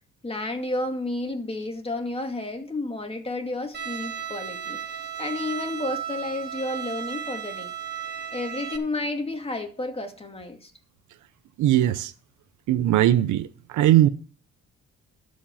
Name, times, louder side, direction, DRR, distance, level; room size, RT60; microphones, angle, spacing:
voice 1, 0.2-7.7 8.3-10.7, left 2 dB, 20° left, 2.3 m, -31 dB
Bowed string instrument, 3.7-8.8, right 8 dB, 35° right, 2.0 m, -34 dB
voice 2, 11.6-12.1 12.7-13.5 13.7-14.1, right 13 dB, 80° right, 0.7 m, -19 dB
12.5 x 5.2 x 7.1 m
cardioid pair, 90°, 30 cm